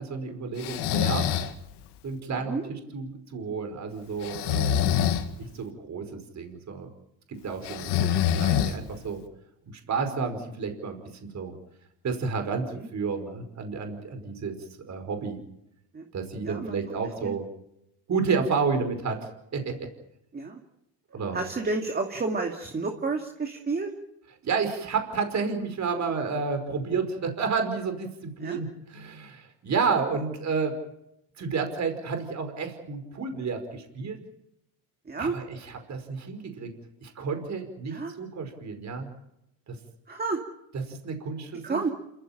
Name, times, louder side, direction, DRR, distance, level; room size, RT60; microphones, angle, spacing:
voice 1, 0.0-1.4 2.0-5.0 5.4-6.9 7.4-9.2 9.9-11.6 12.0-12.7 12.9-14.5 14.9-15.4 16.1-17.4 18.1-19.7 21.1-21.4 24.4-30.7 31.4-34.2 35.2-36.7 37.0-39.1 39.7-39.8 40.9-41.8, right 5 dB, 40° right, 7 dB, 5.1 m, -31 dB
Breathing, 0.6-1.5 4.2-5.3 7.6-9.0, left 10 dB, 70° left, 2.2 m, -25 dB
voice 2, 16.4-17.0 17.2-17.4 20.3-20.6 21.3-23.9 28.4-28.6 35.1-35.3 37.8-38.2 40.1-40.4 41.6-41.9, right 3 dB, 20° right, 3 dB, 2.5 m, -31 dB
27.5 x 15.0 x 8.9 m, 0.83 s
cardioid pair, 110°, 42 cm